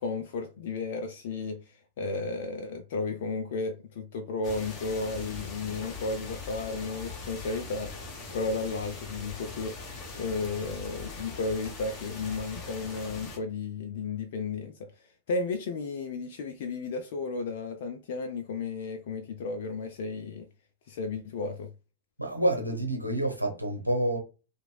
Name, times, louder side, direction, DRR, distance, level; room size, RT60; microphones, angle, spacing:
voice 1, 0.0-8.0 8.3-9.8 10.2-20.5 20.9-21.7, left 3 dB, 55° left, 0.4 m, -33 dB
sound 1, 4.4-13.4, left 3 dB, 30° left, 1.1 m, -41 dB
voice 2, 22.2-24.2, right 1 dB, 90° left, 0.7 m, -28 dB
3.0 x 2.5 x 2.2 m
figure-of-eight pair, 90°, 0 cm